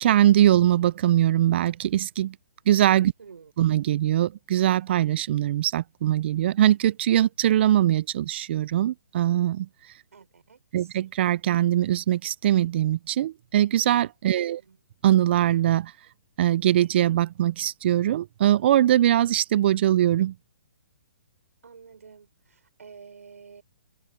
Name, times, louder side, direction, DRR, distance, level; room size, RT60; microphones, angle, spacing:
voice 1, 0.0-2.3 2.7-3.1 3.6-9.7 10.7-14.6 15.0-15.9 16.4-20.3, right 12 dB, 45° right, 0.5 m, -22 dB
voice 2, 3.2-3.5 10.1-11.0 14.4-14.8 21.6-23.6, right 6 dB, 80° right, 5.5 m, -49 dB
hypercardioid pair, 145°, 8 cm